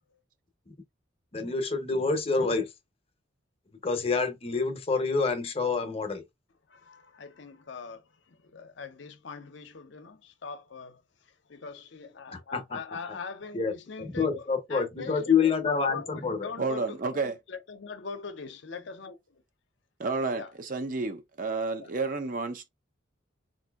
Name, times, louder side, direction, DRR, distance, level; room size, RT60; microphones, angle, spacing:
voice 1, 1.3-2.7 3.8-6.2 12.3-12.8 13.5-13.7 14.0-16.5, left 5 dB, 30° left, 0.7 m, -27 dB
voice 2, 6.7-19.4 20.3-20.5 21.8-21.9, left 5 dB, 65° left, 0.6 m, -42 dB
voice 3, 16.6-17.4 20.0-22.7, right 3 dB, 40° right, 0.5 m, -31 dB
3.9 x 2.6 x 2.3 m
head